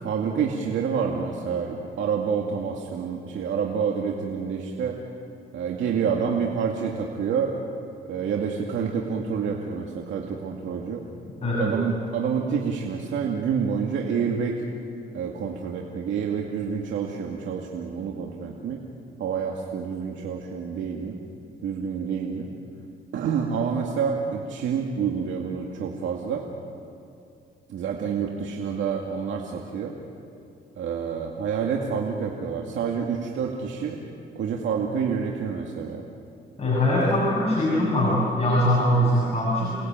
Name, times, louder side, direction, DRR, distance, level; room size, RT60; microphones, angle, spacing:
voice 1, 0.0-5.0 5.5-7.5 8.1-11.0 11.6-14.6 15.1-18.8 19.2-21.2 21.6-22.5 23.1-26.5 27.7-29.9 30.8-34.0 34.4-36.0, right 6 dB, 75° right, 0 dB, 2.3 m, -28 dB
voice 2, 11.4-11.7 36.6-39.7, left 1 dB, 30° left, -5 dB, 7.4 m, -22 dB
29.0 x 20.0 x 9.1 m, 2.5 s
cardioid pair, 90°, 20 cm